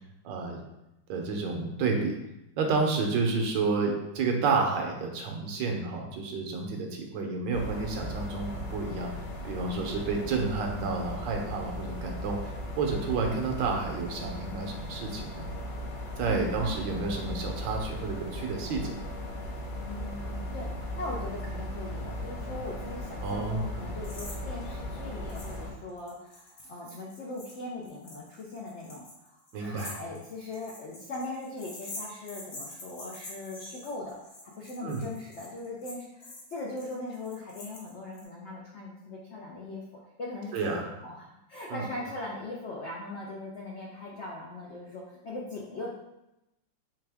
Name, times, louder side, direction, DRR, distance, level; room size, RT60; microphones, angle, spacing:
voice 1, 0.2-0.6 1.1-2.2 2.6-9.1 9.4-15.5 16.2-19.0 23.2-23.6 29.5-29.9 34.8-35.0 40.5-40.9 41.7-41.8, right 4 dB, 75° right, 2 dB, 1.4 m, -30 dB
sound 1, 7.5-25.7, left 1 dB, 65° left, 1.4 m, -37 dB
voice 2, 16.3-16.7 19.8-34.1 34.4-39.8 40.2-45.9, left 2 dB, 90° left, -3 dB, 0.6 m, -40 dB
sound 2, 24.0-24.4 24.6-24.7 25.3-25.6 25.9-38.2, left 2 dB, 45° left, 1.1 m, -46 dB
3.5 x 3.4 x 3.4 m, 0.90 s
omnidirectional pair, 2.0 m